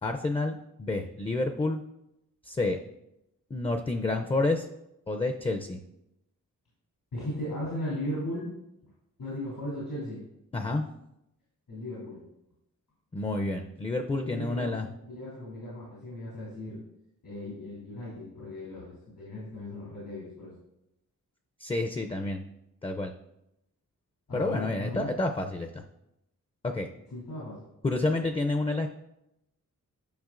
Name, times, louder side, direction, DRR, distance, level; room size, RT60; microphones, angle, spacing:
voice 1, 0.0-1.8 2.4-2.8 3.5-4.7 5.1-5.8 10.5-10.9 13.1-14.9 21.6-22.4 22.8-23.1 24.3-25.8 26.6-26.9 27.8-28.9, left 2 dB, 15° left, 5 dB, 0.4 m, -29 dB
voice 2, 7.1-8.5 8.8-8.9 9.2-10.2 11.7-12.2 14.2-14.7 15.1-16.8 17.2-20.5 24.3-25.2 27.1-27.6, left 1 dB, 90° left, -7 dB, 3.0 m, -37 dB
10.5 x 5.9 x 2.5 m, 0.85 s
wide cardioid pair, 110°, 33 cm